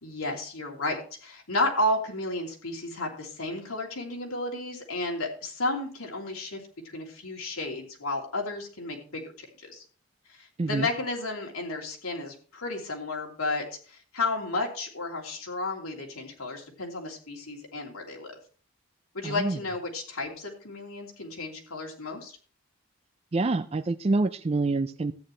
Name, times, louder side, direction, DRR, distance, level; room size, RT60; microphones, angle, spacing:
voice 1, 0.0-6.6 6.9-9.8 10.4-18.3 19.1-22.4, left 2 dB, 90° left, 0 dB, 3.1 m, -32 dB
voice 2, 19.2-19.6 23.3-25.1, right 3 dB, 30° right, 9 dB, 0.4 m, -26 dB
13.5 x 9.4 x 3.2 m, 0.40 s
head